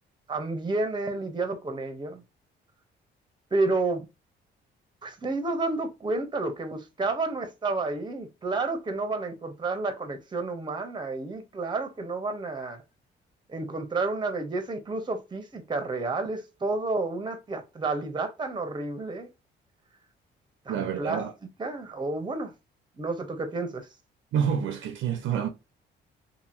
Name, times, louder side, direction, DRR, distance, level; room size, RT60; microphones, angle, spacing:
voice 1, 0.3-2.2 3.5-4.1 5.0-12.8 13.5-19.3 20.7-21.2 21.6-22.5 23.0-23.9, right 3 dB, 25° right, 0.8 m, -30 dB
voice 2, 20.7-21.3 24.3-25.5, right 8 dB, 75° right, 0.7 m, -28 dB
2.8 x 2.7 x 2.4 m
cardioid pair, 90°, 20 cm